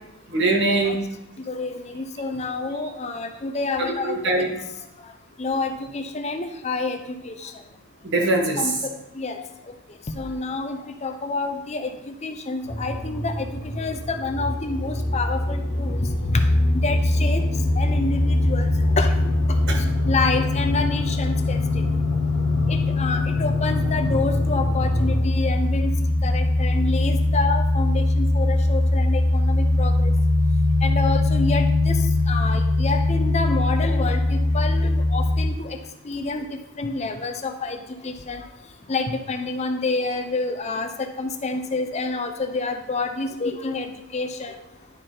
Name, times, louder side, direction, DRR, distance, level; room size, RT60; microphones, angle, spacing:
voice 1, 0.3-1.0 3.8-4.6 8.0-8.7 19.7-19.8, right 2 dB, 55° right, 1 dB, 1.3 m, -22 dB
voice 2, 1.5-4.2 5.4-7.0 7.2-7.5 8.6-8.7 9.2-9.4 10.2-13.5 13.7-16.4 16.8-17.4 17.8-18.7 19.0-19.1 20.1-21.9 22.7-25.9 26.2-30.1 30.8-32.0 32.3-35.8 36.0-36.4 36.8-38.4 38.9-43.9 44.1-44.5, left 3 dB, 30° left, 6 dB, 0.6 m, -28 dB
sound 1, 12.6-25.2, equal, 60° left, 1.2 m, -29 dB
sound 2, 16.2-35.5, left 2 dB, 80° left, 0.8 m, -21 dB
10.5 x 4.4 x 3.8 m, 0.86 s
head